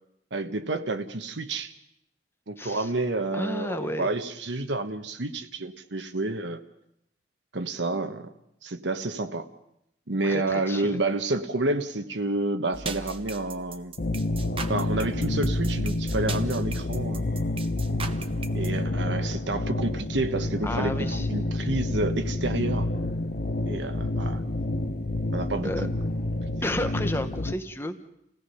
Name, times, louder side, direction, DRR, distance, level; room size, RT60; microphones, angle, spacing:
voice 1, 0.3-1.7 2.5-6.6 7.5-8.3 8.6-9.5 10.1-13.9 14.7-17.2 18.5-22.9 23.7-24.4 25.3-25.9, right 2 dB, 80° right, 7 dB, 1.2 m, -29 dB
voice 2, 3.3-4.1 10.2-11.0 20.6-21.3 25.6-25.9 26.6-28.0, left 1 dB, 15° left, 8 dB, 1.0 m, -32 dB
sound 1, 12.7-18.7, right 4 dB, 30° right, 0.9 m, -36 dB
sound 2, 14.0-27.5, left 2 dB, 55° left, 0.8 m, -29 dB
30.0 x 17.0 x 5.6 m, 0.78 s
head